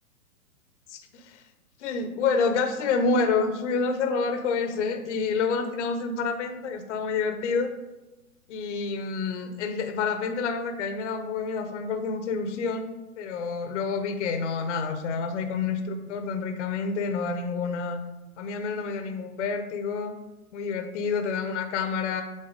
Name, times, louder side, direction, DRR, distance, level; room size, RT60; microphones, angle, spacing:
voice 1, 0.9-1.4 1.8-7.7 8.5-12.9 13.2-18.0 18.4-20.1 20.5-22.2, left 4 dB, 50° left, 7 dB, 0.9 m, -28 dB
7.4 x 4.1 x 5.0 m, 1.1 s
hypercardioid pair, 120°, 44 cm